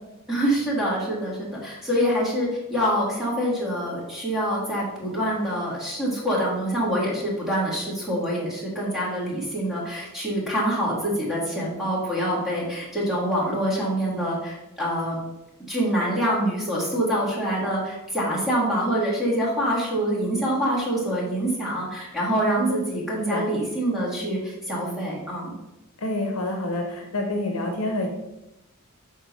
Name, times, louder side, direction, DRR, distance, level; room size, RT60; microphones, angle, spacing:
voice 1, 0.3-15.2 15.7-25.5, equal, ahead, -7 dB, 1.6 m, -25 dB
voice 2, 22.4-22.9 23.2-23.4 26.0-28.1, left 1 dB, 70° left, 2 dB, 0.8 m, -27 dB
6.6 x 3.7 x 4.0 m, 0.97 s
head